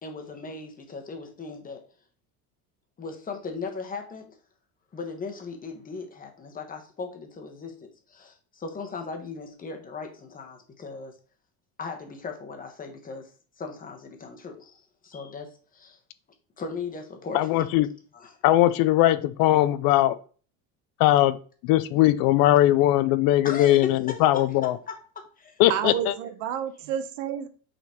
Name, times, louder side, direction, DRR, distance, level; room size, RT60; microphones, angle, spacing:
voice 1, 0.0-1.8 3.0-4.4 4.9-11.2 11.8-16.0 16.6-17.7 18.1-18.4 23.4-25.6, left 4 dB, 20° left, 1.2 m, -38 dB
voice 2, 17.3-17.9 18.4-20.2 21.0-21.4 21.6-24.8 25.6-25.9, left 14 dB, 60° left, 0.6 m, -20 dB
voice 3, 25.7-27.5, right 9 dB, 85° right, 1.1 m, -30 dB
5.9 x 4.1 x 4.3 m
cardioid pair, 145°, 40 cm